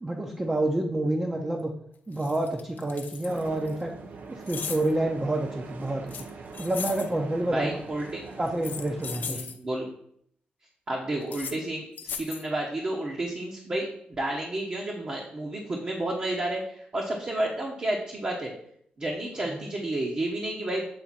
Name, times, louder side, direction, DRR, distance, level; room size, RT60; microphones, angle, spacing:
voice 1, 0.0-1.7 2.1-3.9 4.3-6.2 6.6-7.8 8.4-9.4 19.5-19.7, right 1 dB, 20° right, 1 dB, 0.8 m, -28 dB
sound 1, 1.6-1.7 2.1-3.7 4.5-4.9 6.1-7.1 8.5-9.6 11.2-11.6 12.0-12.5, left 7 dB, 75° left, 0.6 m, -37 dB
sound 2, 3.2-9.3, right 4 dB, 60° right, 0.7 m, -43 dB
voice 2, 7.5-8.2 9.2-9.9 10.9-13.9 14.2-18.5 19.0-20.8, right 1 dB, 40° right, -2 dB, 1.2 m, -31 dB
7.8 x 3.6 x 4.3 m, 0.67 s
cardioid pair, 75°, 3 cm